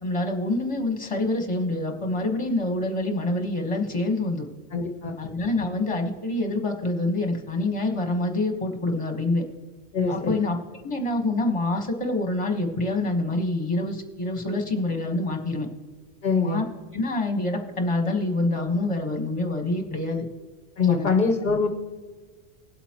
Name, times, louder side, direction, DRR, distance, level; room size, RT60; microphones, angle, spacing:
voice 1, 0.0-4.5 5.2-9.4 10.0-10.6 10.8-15.7 16.4-16.6 16.9-20.2 20.9-21.1, left 2 dB, 30° left, 3 dB, 1.5 m, -26 dB
voice 2, 4.7-5.2 9.9-10.4 16.2-16.6 20.8-21.7, left 4 dB, 50° left, 4 dB, 1.0 m, -23 dB
20.0 x 8.1 x 3.0 m, 1.5 s
omnidirectional pair, 1.1 m